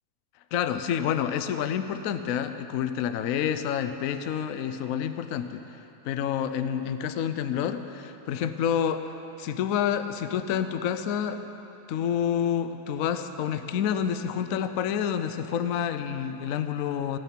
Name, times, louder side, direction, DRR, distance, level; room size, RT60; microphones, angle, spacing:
voice 1, 0.5-5.6 6.1-9.1 9.4-11.4 11.9-17.2, left 8 dB, 65° left, 10 dB, 0.9 m, -28 dB
17.0 x 6.9 x 9.9 m, 3.0 s
omnidirectional pair, 1.8 m